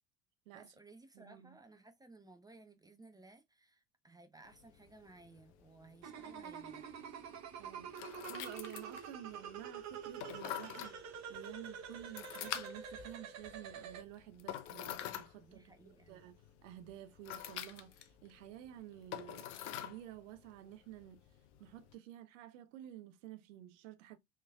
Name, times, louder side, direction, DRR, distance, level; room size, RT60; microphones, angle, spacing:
voice 1, 0.5-6.9 15.3-16.2, right 3 dB, 10° right, 0.7 m, -59 dB
voice 2, 1.1-1.6 7.6-7.9 8.2-15.7 16.1-16.4 16.6-21.2 21.6-24.2, right 12 dB, 55° right, 0.8 m, -52 dB
sound 1, 4.4-21.9, left 11 dB, 55° left, 0.7 m, -48 dB
sound 2, 6.0-14.0, right 7 dB, 40° right, 1.1 m, -47 dB
4.4 x 3.2 x 2.4 m
figure-of-eight pair, 70°, 43 cm